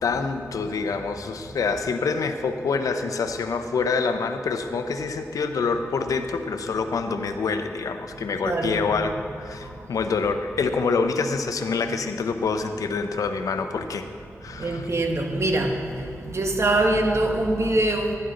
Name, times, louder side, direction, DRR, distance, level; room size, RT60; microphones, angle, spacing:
voice 1, 0.0-14.1 14.4-14.9, left 4 dB, 90° left, 8 dB, 0.6 m, -26 dB
voice 2, 8.4-8.8 14.6-15.7 16.2-18.2, right 2 dB, 55° right, 3 dB, 1.4 m, -23 dB
12.5 x 10.5 x 3.8 m, 2.7 s
cardioid pair, 45°, 6 cm